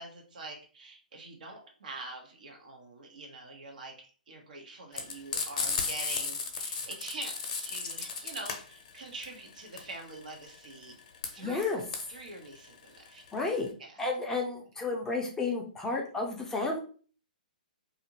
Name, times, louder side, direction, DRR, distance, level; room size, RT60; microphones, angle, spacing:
voice 1, 0.0-3.9 4.3-10.9 11.3-11.8 12.1-13.2 13.8-14.0, right 2 dB, 65° right, 2 dB, 0.9 m, -44 dB
Frying (food), 4.9-13.7, left 5 dB, 50° left, 0.7 m, -35 dB
voice 2, 11.4-11.8 13.3-13.7 14.0-16.8, left 3 dB, 10° left, 0 dB, 0.5 m, -31 dB
2.6 x 2.4 x 2.9 m, 0.40 s
figure-of-eight pair, 125°, 5 cm